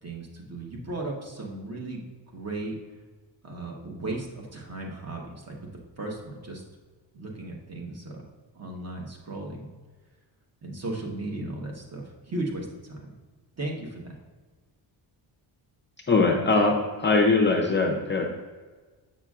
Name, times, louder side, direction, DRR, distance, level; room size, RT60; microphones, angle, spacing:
voice 1, 0.0-2.7 3.4-5.7 6.0-6.6 7.1-8.2 8.5-9.7 10.6-13.1 13.6-14.1, right 2 dB, 35° right, -1 dB, 1.1 m, -36 dB
voice 2, 16.1-18.3, left 3 dB, 25° left, 1 dB, 0.5 m, -21 dB
7.3 x 5.8 x 2.4 m, 1.4 s
cardioid pair, 140°, 45 cm